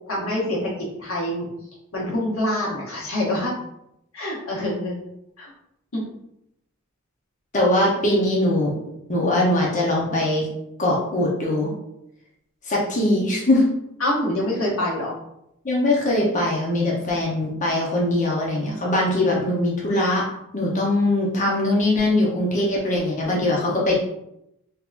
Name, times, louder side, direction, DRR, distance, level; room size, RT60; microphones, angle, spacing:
voice 1, 0.1-0.7 1.0-1.5 1.9-3.5 4.1-5.0 5.4-5.5 5.9-6.0 14.0-15.1, left 1 dB, 75° left, -4 dB, 1.2 m, -25 dB
voice 2, 7.5-8.7 9.1-10.5 10.8-11.7 12.7-13.7 15.6-20.2 20.5-24.0, left 1 dB, 35° left, -3 dB, 0.7 m, -21 dB
3.5 x 2.9 x 2.4 m, 0.80 s
head